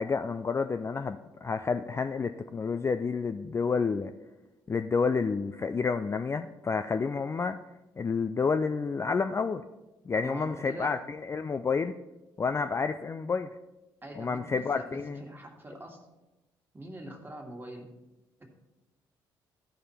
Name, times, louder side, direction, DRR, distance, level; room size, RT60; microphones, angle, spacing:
voice 1, 0.0-4.1 4.7-7.6 8.0-9.6 10.1-11.9 12.4-13.5 14.2-15.2, left 5 dB, 25° left, 8 dB, 0.4 m, -29 dB
voice 2, 10.1-11.0 14.0-16.0 16.7-17.9 18.4-18.5, right 1 dB, 20° right, 2 dB, 2.0 m, -43 dB
14.0 x 5.0 x 4.2 m, 1.0 s
figure-of-eight pair, 45°, 11 cm